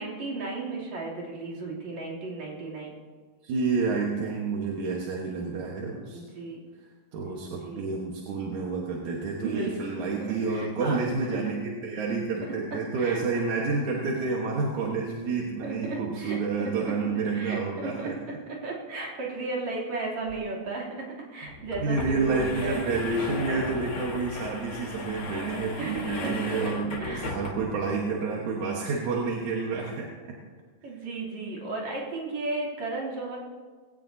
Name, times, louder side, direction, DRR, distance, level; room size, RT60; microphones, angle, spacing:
voice 1, 0.0-3.0 6.1-6.6 7.6-7.9 9.4-10.0 10.3-11.0 12.7-13.2 15.6-16.4 17.3-22.8 25.8-26.6 27.0-27.3 30.8-33.4, right 3 dB, 70° right, -3 dB, 4.4 m, -35 dB
voice 2, 3.4-6.2 7.1-18.2 21.8-30.1, right 4 dB, 85° right, -2 dB, 2.8 m, -29 dB
sound 1, 20.3-20.4 20.7-20.8 21.5-27.9, left 2 dB, 40° left, 1.6 m, -36 dB
20.5 x 17.0 x 2.8 m, 1.5 s
omnidirectional pair, 3.3 m